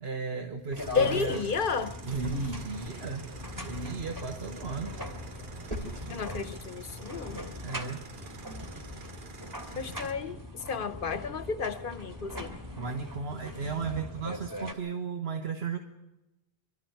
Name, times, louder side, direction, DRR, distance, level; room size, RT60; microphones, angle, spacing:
voice 1, 0.0-1.4 2.1-3.3 3.6-4.9 7.6-8.0 9.7-9.8 12.8-15.8, right 5 dB, 80° right, 1.5 m, -35 dB
sound 1, 0.6-6.9, equal, 35° right, 3.1 m, -45 dB
sound 2, 0.7-14.7, left 1 dB, 20° right, 2.7 m, -41 dB
sound 3, 0.8-10.1, right 4 dB, 55° right, 1.2 m, -49 dB
voice 2, 0.9-2.0 6.1-7.5 9.8-12.5, left 5 dB, 60° left, 1.1 m, -32 dB
25.5 x 13.0 x 9.3 m
omnidirectional pair, 1.0 m